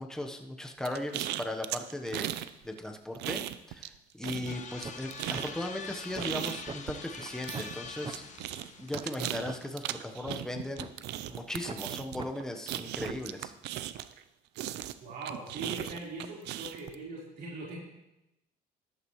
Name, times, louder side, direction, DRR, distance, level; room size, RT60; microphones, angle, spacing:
voice 1, 0.0-2.3 2.6-3.4 3.7-8.2 8.8-10.9 11.3-13.5, left 1 dB, 5° left, 4 dB, 1.1 m, -37 dB
sound 1, 0.8-2.5 2.8-4.0 4.2-14.2 14.6-16.9, right 13 dB, 85° right, 0.6 m, -37 dB
sound 2, 4.5-9.2, left 5 dB, 45° left, 1.1 m, -44 dB
sound 3, 4.5-4.6 4.8-5.1 5.3-5.5 5.9-6.4 6.7-6.8 7.2-7.3 7.5-7.7 8.0-8.2 8.6-8.7 8.9-9.1 9.4-9.6 10.0-10.9 11.3-11.4 11.7-11.8 12.2-12.3 12.7-13.2, right 4 dB, 30° right, 0.8 m, -41 dB
voice 2, 15.0-17.8, right 2 dB, 70° right, -5 dB, 4.2 m, -41 dB
14.0 x 11.5 x 3.2 m, 0.92 s
cardioid pair, 110°, 17 cm